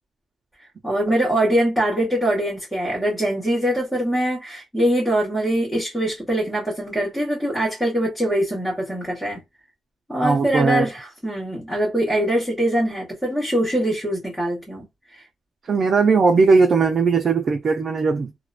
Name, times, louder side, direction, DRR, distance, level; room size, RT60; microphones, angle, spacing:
voice 1, 0.8-9.4 10.1-14.8 15.1-15.3, right 1 dB, 10° left, 1.0 m, -23 dB
voice 2, 10.2-10.9 15.7-18.3, right 4 dB, 40° right, 0.5 m, -18 dB
2.7 x 2.1 x 2.4 m
cardioid pair, 145°, 0 cm